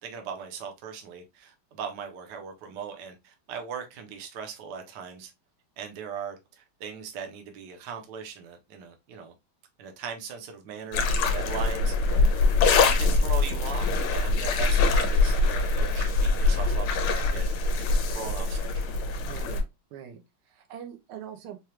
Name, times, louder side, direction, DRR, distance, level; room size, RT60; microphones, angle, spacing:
voice 1, 0.0-5.3 5.8-9.3 9.8-11.9 12.8-17.5 18.1-19.0, right 6 dB, 60° right, 1.3 m, -39 dB
sound 1, 10.9-19.6, left 3 dB, 80° left, 1.6 m, -23 dB
voice 2, 19.2-21.6, right 9 dB, 90° right, 1.6 m, -43 dB
4.8 x 2.3 x 2.8 m
omnidirectional pair, 2.3 m